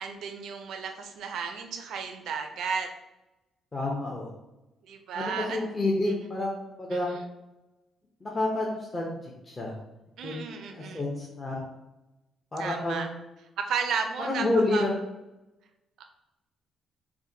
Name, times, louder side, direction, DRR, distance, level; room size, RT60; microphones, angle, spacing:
voice 1, 0.0-2.9 4.8-5.6 6.2-6.3 10.2-11.0 12.6-13.1 13.6-14.8 16.0-16.1, right 6 dB, 75° right, 5 dB, 0.5 m, -33 dB
voice 2, 3.7-4.3 5.2-6.5 6.8-7.1 8.2-9.7 10.2-10.4 10.7-11.6 12.5-13.1 14.2-14.9, left 2 dB, 30° left, -2 dB, 0.7 m, -29 dB
4.6 x 2.2 x 2.7 m, 0.97 s
cardioid pair, 90°, 0 cm